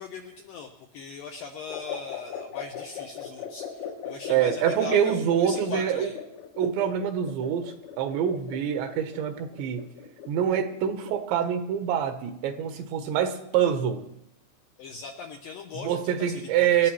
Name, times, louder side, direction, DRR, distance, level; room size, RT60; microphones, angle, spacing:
voice 1, 0.0-6.2 14.8-16.9, left 5 dB, 80° left, 3 dB, 2.0 m, -40 dB
sound 1, 1.7-11.3, left 8 dB, 65° left, 2.0 m, -39 dB
voice 2, 4.3-6.1 6.6-9.8 10.3-14.0 15.8-16.9, right 9 dB, 80° right, 7 dB, 3.3 m, -25 dB
28.0 x 11.0 x 3.1 m, 0.79 s
omnidirectional pair, 5.2 m